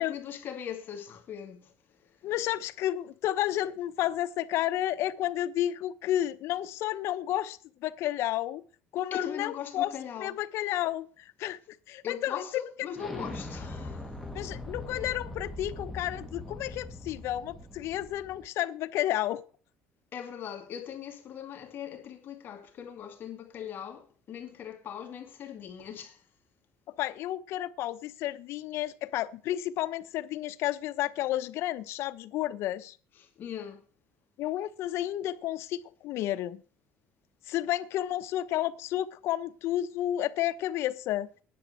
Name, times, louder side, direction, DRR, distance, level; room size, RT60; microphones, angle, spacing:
voice 1, 0.0-2.3 9.1-10.4 12.0-14.1 20.1-26.3 33.1-33.9, left 8 dB, 45° left, 2.5 m, -40 dB
voice 2, 2.2-8.6 8.9-9.9 10.2-11.6 11.9-12.6 14.3-19.4 27.0-33.0 34.4-36.6 37.5-41.3, left 13 dB, 65° left, 0.9 m, -31 dB
Explosion, 12.9-18.5, left 2 dB, ahead, 2.2 m, -41 dB
10.5 x 7.3 x 8.1 m
cardioid pair, 130°, 5 cm